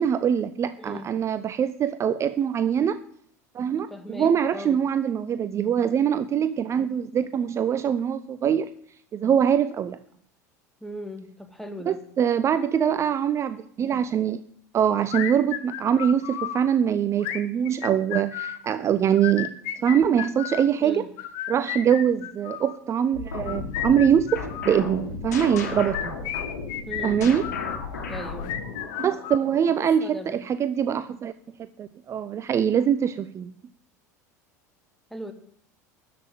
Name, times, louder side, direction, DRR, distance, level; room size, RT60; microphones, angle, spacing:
voice 1, 0.0-3.0 3.5-8.7 9.1-10.0 11.9-14.4 14.7-19.6 19.8-21.1 21.5-26.2 27.0-27.5 29.0-31.3 31.6-33.5, right 8 dB, 30° right, 14 dB, 0.6 m, -23 dB
voice 2, 0.8-1.1 3.9-4.8 10.8-12.0 20.8-21.1 26.9-27.3 28.1-28.6 30.0-30.4 35.1-35.3, equal, 5° left, 7 dB, 2.0 m, -38 dB
sound 1, 15.1-16.6 17.2-18.6 19.1-20.7 21.2-22.8 23.3-24.8 25.5-27.8 28.4-29.9, left 11 dB, 55° left, 1.3 m, -33 dB
sound 2, 23.1-29.3, left 4 dB, 75° left, 2.9 m, -34 dB
13.0 x 6.0 x 9.3 m, 0.65 s
figure-of-eight pair, 75°, 9 cm